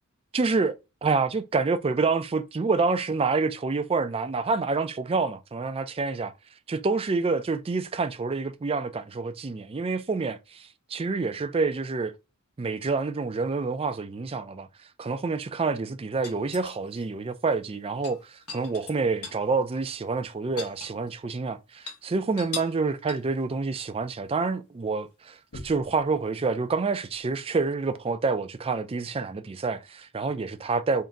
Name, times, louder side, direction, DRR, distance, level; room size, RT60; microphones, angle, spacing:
voice 1, 0.3-0.7 1.0-6.3 6.7-12.1 12.6-14.7 15.0-25.4 25.6-31.0, right 4 dB, 25° right, 0.4 m, -27 dB
sound 1, 16.2-17.0 17.9-19.5 19.7-19.8 20.2-21.4 21.7-22.0 22.4-22.8 23.1-23.4 25.5-25.9 27.5-27.6, left 4 dB, 75° left, 1.7 m, -40 dB
3.8 x 2.7 x 3.4 m
head